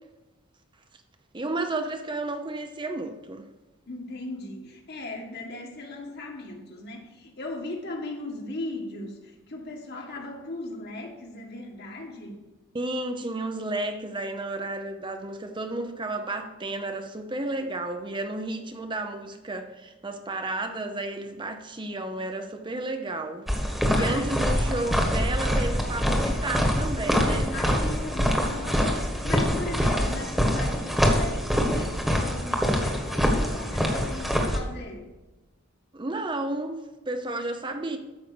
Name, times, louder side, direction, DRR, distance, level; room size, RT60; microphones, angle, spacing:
voice 1, 1.3-3.4 12.7-23.5 23.7-27.5 35.9-38.0, right 2 dB, 25° right, 0.7 m, -32 dB
voice 2, 3.9-12.4 23.9-24.4 27.5-35.1, left 2 dB, 50° left, 2.0 m, -38 dB
sound 1, 23.5-34.6, equal, ahead, 1.5 m, -25 dB
13.0 x 5.5 x 7.0 m
head